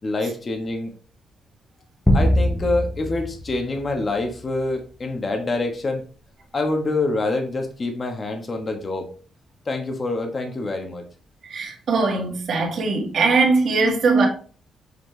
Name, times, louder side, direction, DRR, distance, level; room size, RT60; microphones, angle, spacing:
voice 1, 0.0-0.9 2.1-6.0 6.5-9.1 9.7-11.0 13.8-14.0, left 2 dB, 30° left, 1.2 m, -26 dB
sound 1, 2.1-4.6, equal, 5° left, 0.9 m, -23 dB
voice 2, 11.5-14.3, right 4 dB, 50° right, 2.0 m, -20 dB
6.7 x 4.4 x 3.3 m
cardioid pair, 155°, 0 cm